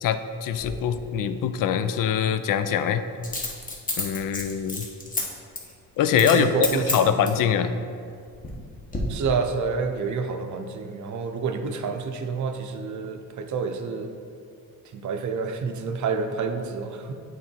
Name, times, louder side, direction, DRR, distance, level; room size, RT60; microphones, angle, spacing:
voice 1, 0.0-3.0 4.0-4.9 6.0-7.7, left 8 dB, 65° left, 11 dB, 0.5 m, -23 dB
Coin (dropping), 0.6-0.7 3.2-5.2 5.6-5.7 6.1-6.4 6.6-7.4 8.1-8.6 8.9-9.0, left 2 dB, 20° left, 1.1 m, -30 dB
voice 2, 6.2-7.4 9.1-14.1 14.9-17.1, right 5 dB, 55° right, 6 dB, 0.6 m, -28 dB
8.4 x 3.7 x 4.4 m, 2.3 s
cardioid pair, 125°, 36 cm